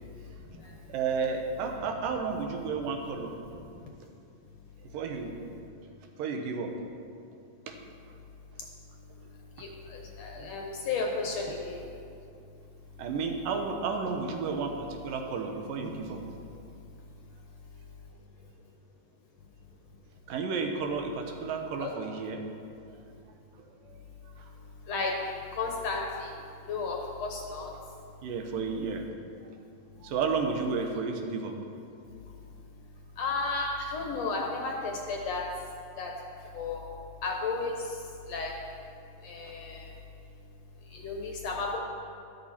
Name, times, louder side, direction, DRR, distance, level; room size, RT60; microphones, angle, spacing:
voice 1, 0.9-3.3 4.9-5.4 6.2-6.7 7.7-7.8 10.4-10.5 13.0-14.7 15.0-16.2 20.3-22.4 23.9-24.0 28.2-29.0 30.0-31.6, right 5 dB, 75° right, 4 dB, 2.6 m, -32 dB
voice 2, 9.9-11.8 21.8-21.9 24.9-25.1 25.6-26.0 26.7-27.7 30.8-31.0 33.2-35.4 36.0-36.1 36.5-36.8 37.2-37.7 38.3-38.5 39.2-39.8 41.0-41.8, left 4 dB, 65° left, 0 dB, 1.8 m, -33 dB
13.0 x 11.5 x 4.3 m, 2.6 s
omnidirectional pair, 4.1 m